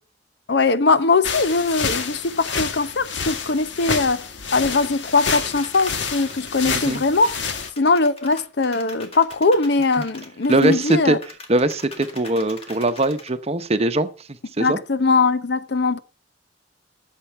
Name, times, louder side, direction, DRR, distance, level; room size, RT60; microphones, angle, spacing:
voice 1, 0.5-4.3 4.5-7.3 7.8-11.2 14.6-16.0, left 3 dB, 65° left, 0.8 m, -20 dB
sound 1, 1.2-7.7, left 5 dB, 80° left, 1.4 m, -28 dB
sound 2, 5.2-13.3, left 3 dB, 35° left, 2.0 m, -41 dB
voice 2, 6.7-7.0 10.5-11.2 11.5-14.1 14.6-14.8, right 2 dB, 35° right, 0.9 m, -21 dB
12.5 x 7.6 x 5.7 m
head